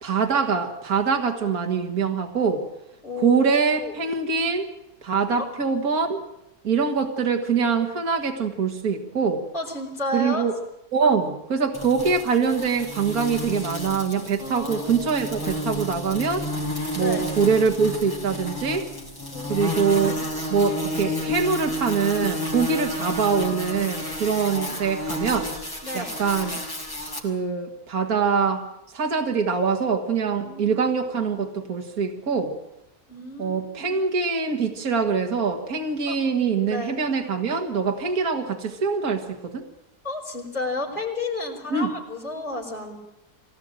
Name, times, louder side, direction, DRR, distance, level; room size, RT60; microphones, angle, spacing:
voice 1, 0.0-2.6 3.2-4.7 5.0-6.2 6.6-9.4 10.1-10.5 10.9-16.5 17.0-18.9 19.5-20.2 20.5-25.5 25.9-26.6 27.2-28.7 28.9-32.6 33.4-39.7 41.7-41.9, right 5 dB, 65° right, 3 dB, 2.3 m, -24 dB
voice 2, 3.0-3.9 5.4-5.5 9.5-10.4 14.4-15.3 17.0-17.2 19.3-20.2 25.8-26.1 30.4-30.9 31.2-31.3 33.1-34.0 36.1-36.2 36.7-37.0 40.0-43.0, left 2 dB, 30° left, -6 dB, 4.9 m, -32 dB
sound 1, 11.7-27.2, left 1 dB, 15° left, 4.5 m, -31 dB
23.5 x 18.5 x 9.0 m, 0.87 s
omnidirectional pair, 1.7 m